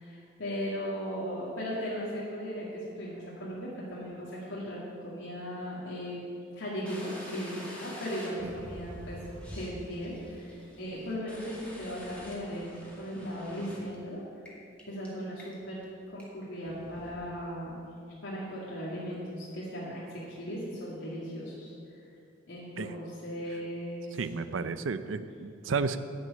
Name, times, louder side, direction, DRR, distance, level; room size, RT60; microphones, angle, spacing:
voice 1, 0.0-9.2 9.5-14.2 14.9-15.8 16.1-17.8 18.2-20.0 20.4-21.7 22.5-24.3, equal, 90° left, -7 dB, 2.3 m, -37 dB
sound 1, 6.9-14.0 14.5-14.6 14.8-15.1 15.4-15.8 16.2-16.3 16.7-17.1, equal, 5° left, 2.3 m, -46 dB
voice 2, 24.2-26.0, right 4 dB, 90° right, 13 dB, 0.5 m, -32 dB
11.0 x 6.2 x 8.7 m, 2.4 s
head